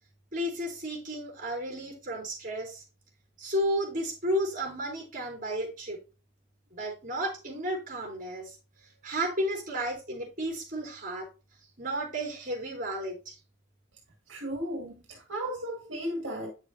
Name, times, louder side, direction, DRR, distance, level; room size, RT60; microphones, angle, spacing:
voice 1, 0.3-2.8 3.4-6.0 6.7-8.6 9.0-11.3 11.8-13.4, equal, 40° right, 3.8 m, -33 dB
voice 2, 14.3-16.5, equal, 70° right, 2.1 m, -35 dB
9.8 x 6.5 x 2.8 m
head